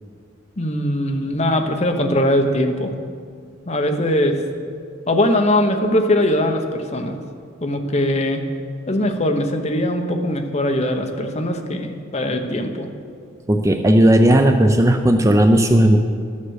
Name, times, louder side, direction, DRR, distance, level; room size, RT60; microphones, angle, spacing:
voice 1, 0.6-2.9 3.7-4.4 5.1-7.2 7.6-8.4 8.9-12.9, left 1 dB, 35° left, 5 dB, 0.9 m, -21 dB
voice 2, 13.5-16.0, right 1 dB, 15° right, 5 dB, 0.4 m, -14 dB
12.5 x 7.4 x 6.4 m, 2.2 s
head